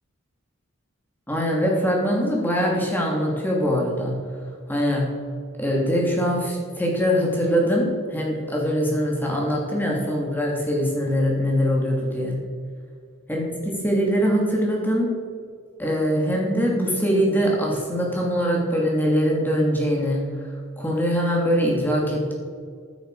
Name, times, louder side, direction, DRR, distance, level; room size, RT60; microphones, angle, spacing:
voice 1, 1.3-4.1 4.7-5.0 5.6-7.8 8.1-12.4 13.3-13.4 13.8-15.1 15.8-20.2 20.8-22.3, equal, 10° left, -2 dB, 2.9 m, -22 dB
15.5 x 9.2 x 5.0 m, 2.1 s
head